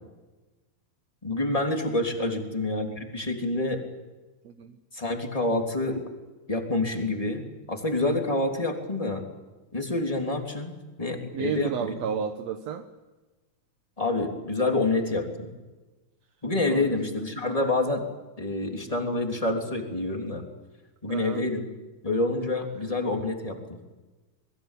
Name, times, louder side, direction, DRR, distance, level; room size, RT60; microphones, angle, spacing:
voice 1, 1.2-3.9 4.9-6.0 6.5-9.2 9.7-12.0 14.0-15.5 16.4-18.0 18.4-20.4 21.0-21.7 22.0-23.8, left 2 dB, 10° left, 2 dB, 2.9 m, -27 dB
voice 2, 4.4-4.8 11.3-12.9 16.7-17.0 19.0-19.1 21.1-21.4, right 8 dB, 60° right, 6 dB, 1.9 m, -32 dB
28.0 x 22.0 x 8.4 m, 1.2 s
omnidirectional pair, 4.1 m